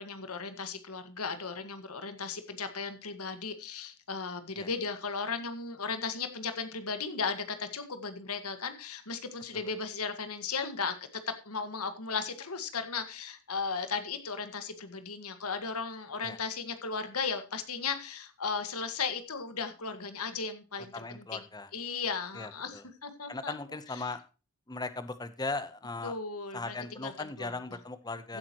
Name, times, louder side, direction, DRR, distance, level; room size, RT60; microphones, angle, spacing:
voice 1, 0.0-10.9 11.3-21.4 21.7-23.5 26.0-27.5 28.3-28.4, left 5 dB, 85° left, 9 dB, 1.8 m, -36 dB
voice 2, 20.9-21.7 22.3-22.8 23.3-24.2 24.7-26.2 26.5-28.4, left 3 dB, 20° left, 12 dB, 0.9 m, -38 dB
15.5 x 8.9 x 3.0 m, 0.32 s
head